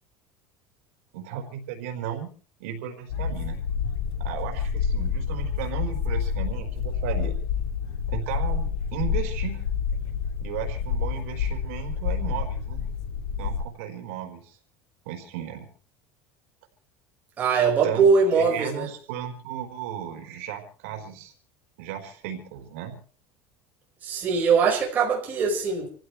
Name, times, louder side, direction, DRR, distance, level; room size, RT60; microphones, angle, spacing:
voice 1, 1.1-2.3 2.6-3.6 4.2-7.3 8.1-9.6 10.4-12.9 13.4-14.6 15.0-15.7 17.8-18.0 18.3-21.3 21.8-22.9, right 10 dB, 85° right, 3 dB, 4.5 m, -35 dB
sound 1, 3.1-13.6, left 6 dB, 75° left, 2.6 m, -28 dB
voice 2, 17.4-18.9 24.0-25.9, right 5 dB, 25° right, -1 dB, 5.3 m, -21 dB
27.5 x 15.5 x 3.3 m, 0.42 s
cardioid pair, 175°, 7 cm